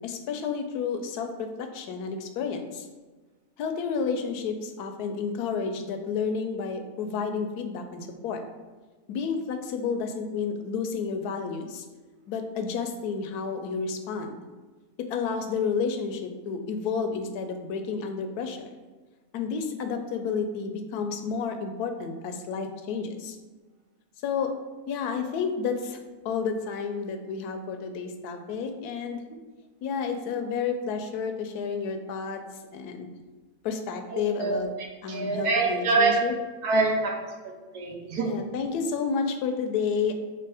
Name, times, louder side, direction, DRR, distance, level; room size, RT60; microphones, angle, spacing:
voice 1, 0.0-2.9 3.6-8.4 9.1-11.8 12.3-14.4 15.0-18.7 19.3-23.4 24.2-24.5 24.9-29.2 29.8-32.4 32.7-33.1 33.6-34.7 35.0-36.3 38.2-40.1, left 5 dB, 80° left, 6 dB, 1.1 m, -31 dB
voice 2, 34.1-34.6 35.1-36.3 36.6-37.2 37.7-38.3, right 3 dB, 80° right, 0 dB, 1.4 m, -25 dB
3.4 x 3.1 x 4.7 m, 1.3 s
omnidirectional pair, 1.6 m